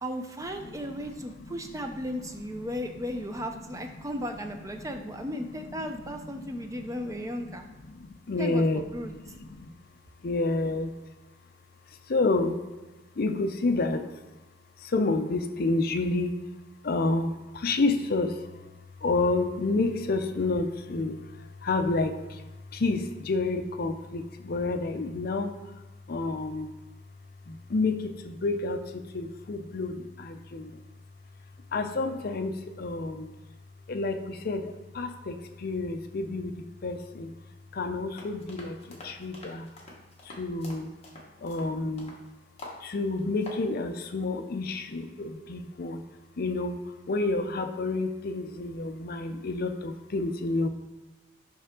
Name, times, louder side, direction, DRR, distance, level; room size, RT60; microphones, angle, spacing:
voice 1, 0.0-7.6 8.4-9.1, equal, 15° right, 5 dB, 0.5 m, -35 dB
voice 2, 6.3-6.9 7.2-7.6 7.9-8.9 9.1-9.7 10.2-10.9 12.1-12.6 13.2-14.0 14.8-16.4 16.8-18.4 19.0-22.4 22.7-25.5 26.1-26.7 27.5-30.8 31.7-33.3 33.9-37.3 37.7-39.7 40.2-40.9 41.4-42.1 42.8-46.0 46.4-50.7, left 3 dB, 50° left, 8 dB, 0.5 m, -29 dB
sound 1, 38.2-42.2 42.6-42.8 43.2-43.6, left 2 dB, 30° left, 1.2 m, -46 dB
7.0 x 5.5 x 3.6 m, 1.2 s
head